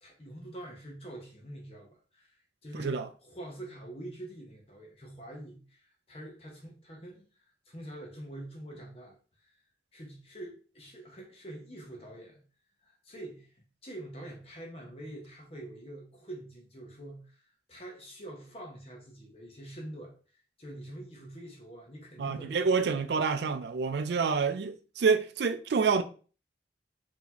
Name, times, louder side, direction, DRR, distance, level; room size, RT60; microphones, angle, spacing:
voice 1, 0.0-2.3 2.6-7.3 7.7-9.2 9.9-12.4 12.8-13.5 13.8-17.4 17.7-20.1 20.6-22.7, right 1 dB, 35° left, 0.9 m, -45 dB
voice 2, 2.7-3.1 22.2-26.0, right 5 dB, 70° right, 0.4 m, -28 dB
4.0 x 2.9 x 2.8 m
head